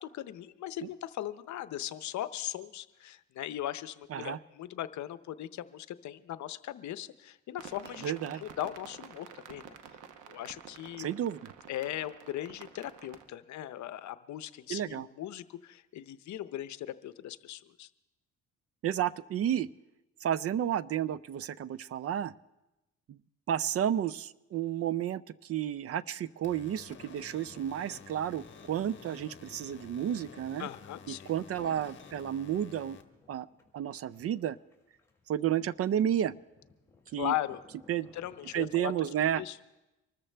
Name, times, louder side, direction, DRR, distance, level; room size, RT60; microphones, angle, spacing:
voice 1, 0.0-9.6 10.3-11.1 11.7-17.9 30.6-31.3 37.2-37.6 38.1-39.1 39.4-39.6, left 12 dB, 70° left, 14 dB, 0.7 m, -38 dB
sound 1, 7.6-13.3, right 8 dB, 85° right, 1.0 m, -50 dB
voice 2, 8.0-8.4 11.0-11.5 14.7-15.1 18.8-19.7 20.2-22.3 23.1-23.2 23.5-30.7 31.1-33.0 33.3-33.5 33.7-34.6 35.3-36.3 37.1-37.3 37.9-38.1 38.5-39.4, right 10 dB, 50° right, 19 dB, 0.4 m, -31 dB
sound 2, 26.4-33.0, left 5 dB, 40° left, 1.4 m, -51 dB
sound 3, 29.7-39.4, left 3 dB, 10° left, 2.9 m, -63 dB
24.5 x 13.5 x 3.4 m, 0.98 s
cardioid pair, 90°, 30 cm